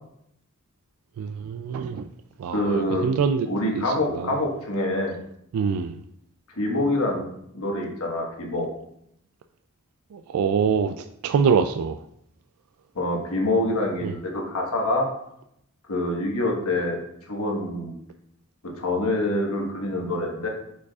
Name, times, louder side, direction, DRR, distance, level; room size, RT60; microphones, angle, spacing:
voice 1, 1.2-2.0 2.4-3.5 3.7-4.3 5.5-6.0 10.1-12.0 14.0-14.1, right 6 dB, 80° right, 7 dB, 0.3 m, -25 dB
voice 2, 2.5-3.1 3.5-5.2 6.5-7.2 7.5-8.7 12.9-15.1 15.9-17.0 17.3-17.9 18.6-20.5, left 1 dB, 85° left, 0 dB, 1.4 m, -25 dB
8.0 x 5.1 x 2.4 m, 0.77 s
head